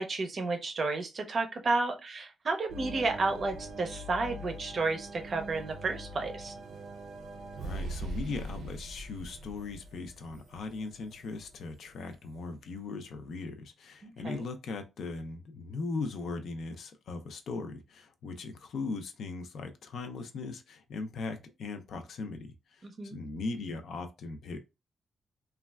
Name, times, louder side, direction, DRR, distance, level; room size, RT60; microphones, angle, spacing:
voice 1, 0.0-6.5 14.0-14.4 22.8-23.2, right 3 dB, 40° right, 0.5 m, -32 dB
sound 1, 2.7-12.1, right 2 dB, 85° right, 0.5 m, -42 dB
voice 2, 7.6-24.6, left 3 dB, 65° left, 0.4 m, -39 dB
3.1 x 2.2 x 2.2 m
wide cardioid pair, 155°, 0 cm